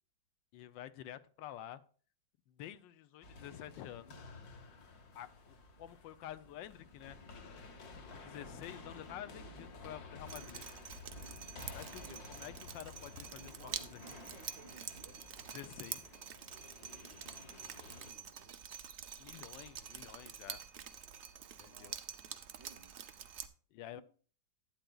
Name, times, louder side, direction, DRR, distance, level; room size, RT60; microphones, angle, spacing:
voice 1, 0.5-1.8 2.5-4.1 5.1-7.2 8.1-10.6 11.7-14.2 15.5-16.2 19.2-20.6 21.6-22.0 23.7-24.0, left 12 dB, 80° left, 14 dB, 1.3 m, -49 dB
sound 1, 3.2-18.1, left 3 dB, 55° left, 1.6 m, -53 dB
Drip, 10.3-23.5, right 8 dB, 85° right, 0.6 m, -47 dB
voice 2, 12.0-12.5 13.4-15.3 17.9-18.5 21.6-22.0 22.6-22.9 23.9-24.0, right 5 dB, 55° right, 8 dB, 1.0 m, -59 dB
11.5 x 9.0 x 2.3 m, 0.42 s
omnidirectional pair, 2.0 m